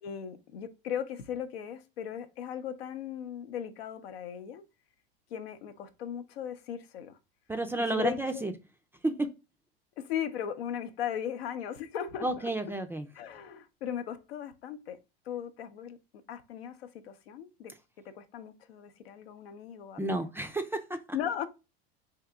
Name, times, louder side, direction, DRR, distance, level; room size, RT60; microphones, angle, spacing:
voice 1, 0.0-4.6 5.3-7.2 7.8-8.5 10.0-12.5 13.1-15.0 15.3-16.0 16.3-17.7 18.0-20.3 21.1-21.5, left 9 dB, 80° left, 0.7 m, -37 dB
voice 2, 7.5-8.5 9.0-9.3 12.2-13.0 20.0-21.0, right 2 dB, 10° right, 0.4 m, -31 dB
3.6 x 2.8 x 3.3 m
hypercardioid pair, 100°, 30 cm